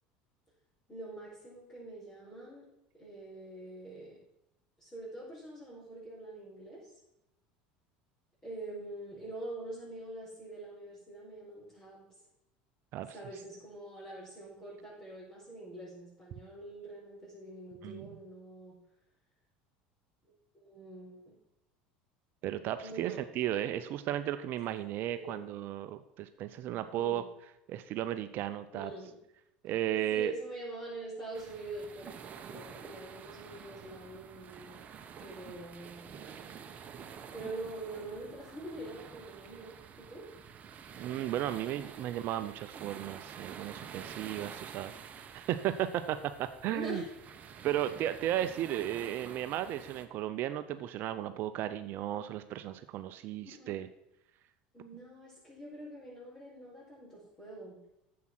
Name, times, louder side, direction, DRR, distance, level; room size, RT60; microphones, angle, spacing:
voice 1, 0.9-2.7 2.9-4.2 4.8-6.9 8.4-12.1 13.1-18.7 20.5-21.3 22.8-23.2 25.1-25.5 26.9-27.2 28.7-29.2 30.1-34.8 35.2-36.2 37.3-40.2 46.6-47.1 53.4-53.8 54.7-57.8, right 1 dB, 20° left, -8 dB, 4.7 m, -45 dB
voice 2, 22.4-27.2 27.7-28.9 29.6-30.3 41.0-47.0 47.6-53.9, right 12 dB, 55° right, 10 dB, 0.7 m, -35 dB
sound 1, 31.3-50.1, right 7 dB, 40° right, 1.1 m, -49 dB
9.5 x 7.6 x 6.1 m, 0.85 s
supercardioid pair, 105°, 4 cm